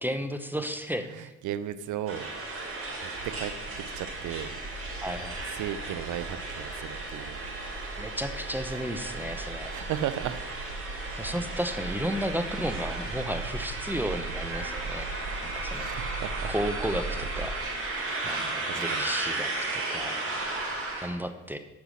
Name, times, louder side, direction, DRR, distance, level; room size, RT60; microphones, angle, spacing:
voice 1, 0.0-1.3 5.0-5.4 8.0-9.7 11.2-15.1 15.4-15.9 16.5-17.6 18.3-20.2 21.0-21.6, equal, 5° right, 8 dB, 0.7 m, -33 dB
voice 2, 1.0-2.3 2.6-3.5 3.9-4.5 5.4-7.4 9.7-10.4 15.7-16.5 18.2-19.1, right 11 dB, 85° right, 14 dB, 0.7 m, -36 dB
sound 1, 2.1-21.1, right 2 dB, 50° right, 3.6 m, -35 dB
sound 2, 3.1-17.6, right 3 dB, 65° right, 0.9 m, -40 dB
8.6 x 5.7 x 6.3 m, 1.0 s
cardioid pair, 90°, 30 cm